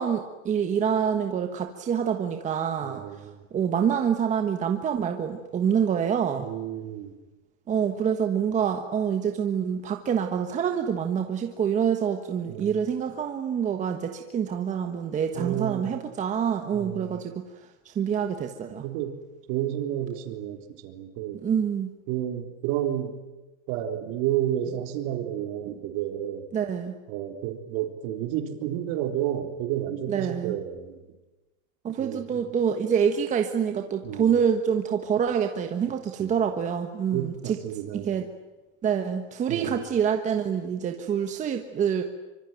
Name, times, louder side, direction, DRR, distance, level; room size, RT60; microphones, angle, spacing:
voice 1, 0.0-3.0 3.5-6.5 7.7-17.5 17.8-18.8 21.4-21.9 26.5-27.0 30.1-30.6 31.8-37.6 37.9-38.3 38.8-42.0, right 7 dB, 20° right, 5 dB, 1.4 m, -26 dB
voice 2, 2.9-3.4 6.4-7.2 12.5-12.8 15.3-15.9 16.7-17.2 18.8-19.2 19.5-21.4 22.1-23.2 23.7-26.4 27.1-31.0 32.0-32.4 34.0-34.4 36.2-36.4 37.1-38.1 39.5-39.8, right 11 dB, 45° right, 6 dB, 3.8 m, -31 dB
25.5 x 25.0 x 9.2 m, 1.1 s
supercardioid pair, 170°, 39 cm